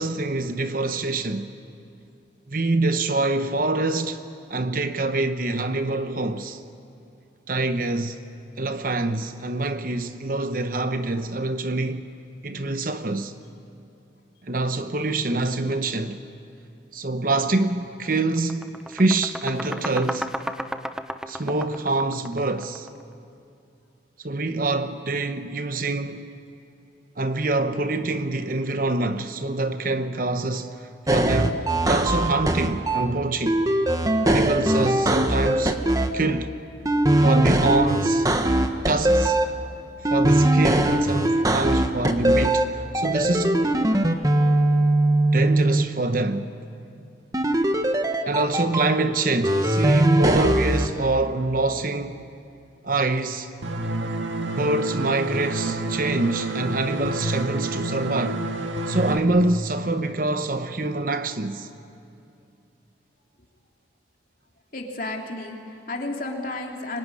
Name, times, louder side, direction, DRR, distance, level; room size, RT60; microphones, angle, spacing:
voice 1, 0.0-1.5 2.5-4.2 4.5-6.6 7.5-8.2 8.6-12.1 12.4-13.3 14.4-16.2 16.9-20.3 21.3-22.9 24.2-26.3 27.2-33.6 34.3-36.5 37.2-38.3 38.8-39.5 40.0-43.7 45.3-46.5 48.3-52.2 52.8-53.5 54.5-58.5 58.9-61.7, right 2 dB, 45° right, 1.0 m, -25 dB
sound 1, 17.6-17.7 18.1-23.0, equal, 5° right, 0.7 m, -33 dB
sound 2, 31.1-33.1 33.5-36.1 36.9-39.5 40.0-42.6 42.9-45.8 47.3-48.8 49.4-50.9, right 1 dB, 20° right, 1.2 m, -20 dB
voice 2, 42.8-43.2 45.2-45.6 55.8-56.4 64.7-67.0, left 2 dB, 45° left, 3.3 m, -35 dB
sound 3, 53.6-59.2, right 1 dB, 90° right, 1.8 m, -28 dB
25.5 x 23.0 x 9.9 m
head